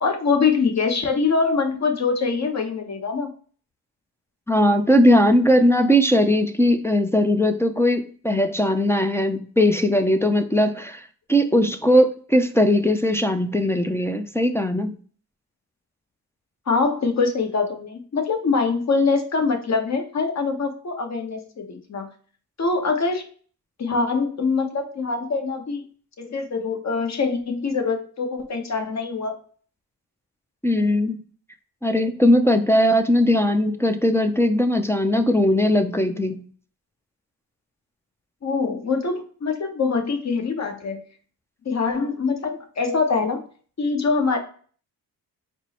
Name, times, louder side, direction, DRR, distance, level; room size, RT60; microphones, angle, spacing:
voice 1, 0.0-3.3 16.7-22.1 22.6-23.2 23.8-25.8 26.2-29.4 38.4-41.0 41.6-43.4 43.8-44.4, left 4 dB, 40° left, 4 dB, 1.0 m, -24 dB
voice 2, 4.5-15.0 30.6-31.2 31.8-36.4, equal, 5° left, 5 dB, 0.4 m, -19 dB
4.5 x 2.0 x 4.1 m, 0.43 s
cardioid pair, 80°, 40 cm